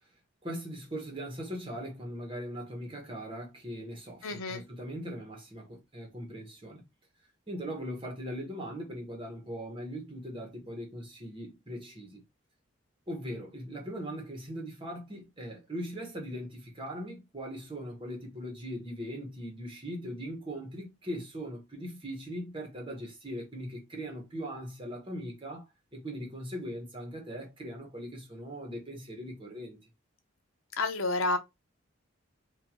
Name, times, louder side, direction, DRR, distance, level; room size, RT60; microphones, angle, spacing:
voice 1, 0.4-6.8 7.5-12.2 13.1-25.6 25.9-29.8, equal, 25° right, 1.2 m, -40 dB
voice 2, 4.2-4.6 30.8-31.4, left 3 dB, 85° left, 0.7 m, -29 dB
3.7 x 2.6 x 3.0 m
head